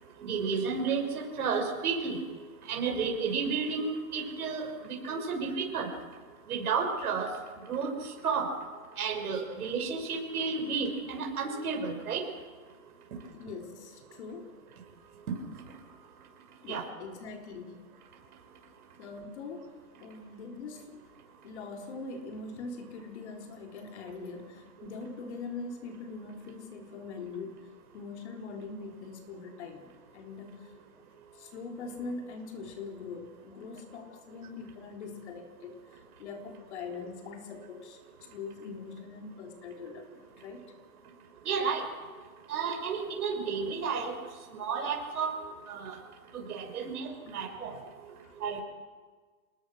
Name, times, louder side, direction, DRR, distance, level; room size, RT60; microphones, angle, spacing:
voice 1, 0.2-2.2 2.7-4.7 5.0-5.9 6.5-7.3 7.7-7.9 8.2-8.5 9.0-12.2 16.7-16.8 41.4-41.8 42.5-44.1 44.5-45.3 45.7-45.9 46.3-47.7 48.4-48.6, right 5 dB, 70° right, 1 dB, 6.2 m, -31 dB
voice 2, 13.3-14.6 16.6-17.8 19.0-19.7 20.0-21.1 21.4-27.6 27.9-31.1 31.3-40.6 48.2-48.3, left 4 dB, 45° left, 3 dB, 3.8 m, -42 dB
27.0 x 20.0 x 6.4 m, 1.5 s
hypercardioid pair, 175°, 46 cm